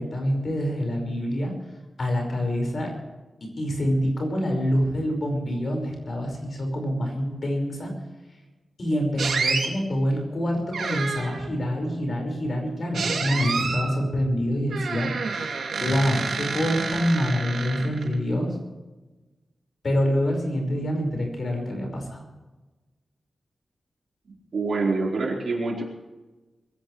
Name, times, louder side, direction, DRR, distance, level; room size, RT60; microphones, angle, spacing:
voice 1, 0.0-1.5 2.0-2.9 3.6-7.9 8.8-15.1 15.8-18.5 19.8-22.2, equal, 40° left, 2 dB, 5.3 m, -26 dB
sound 1, 9.2-9.7 10.7-11.5 12.9-13.9 14.7-18.1, right 4 dB, 90° right, 2.8 m, -28 dB
voice 2, 24.5-25.8, right 3 dB, 60° right, -2 dB, 4.4 m, -25 dB
23.0 x 16.5 x 3.3 m, 1.2 s
wide cardioid pair, 180°, 0 cm